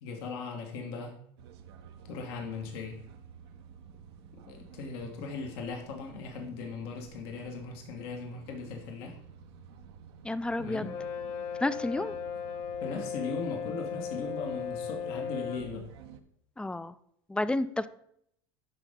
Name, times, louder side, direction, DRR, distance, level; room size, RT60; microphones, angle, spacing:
voice 1, 0.0-1.1 2.0-3.0 4.5-9.2 10.6-10.9 12.0-12.1 12.8-15.9, left 4 dB, 75° left, 2 dB, 1.5 m, -38 dB
sound 1, 1.4-16.2, right 7 dB, 85° right, 0.8 m, -52 dB
voice 2, 10.2-10.9 11.6-12.1 16.6-16.9 17.3-17.9, left 2 dB, 5° left, 15 dB, 0.3 m, -30 dB
Brass instrument, 10.8-15.7, left 7 dB, 50° left, 1.7 m, -37 dB
11.5 x 4.1 x 3.6 m, 0.70 s
supercardioid pair, 115°, 13 cm